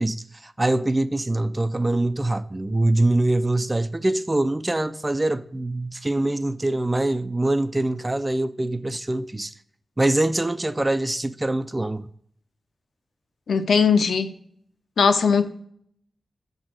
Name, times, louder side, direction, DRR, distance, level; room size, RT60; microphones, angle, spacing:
voice 1, 0.0-9.5 10.0-12.1, right 2 dB, 20° right, 0.4 m, -24 dB
voice 2, 13.5-14.4 15.0-15.5, left 5 dB, 90° left, 0.6 m, -19 dB
7.0 x 4.0 x 6.2 m
wide cardioid pair, 115°, 0 cm